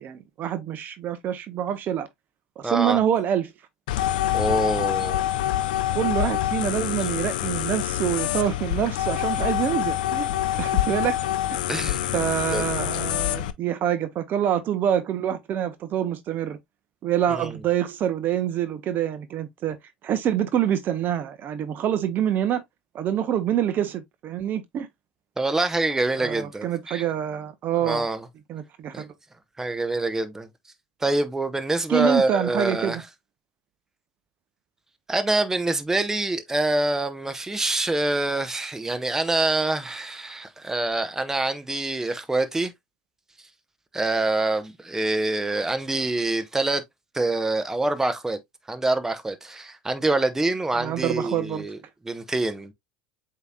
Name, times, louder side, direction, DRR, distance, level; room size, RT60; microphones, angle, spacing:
voice 1, 0.0-2.1 2.6-3.5 5.9-10.3 10.6-11.2 11.5-11.6 12.1-16.6 17.0-19.8 20.0-22.6 22.9-24.9 26.2-28.1 28.5-29.1 31.9-33.0 50.7-51.7, right 10 dB, 45° right, 0.7 m, -26 dB
voice 2, 2.6-3.0 4.3-5.2 11.7-12.2 12.5-12.6 17.3-17.5 25.4-27.0 27.8-28.3 28.9-29.0 29.6-30.5 31.0-33.0 35.1-42.7 43.9-46.8 47.1-48.4 48.7-51.8 52.0-52.7, right 2 dB, 10° right, 0.8 m, -25 dB
sound 1, 3.9-13.5, left 13 dB, 70° left, 0.4 m, -26 dB
8.0 x 2.9 x 2.2 m
hypercardioid pair, 80°, 5 cm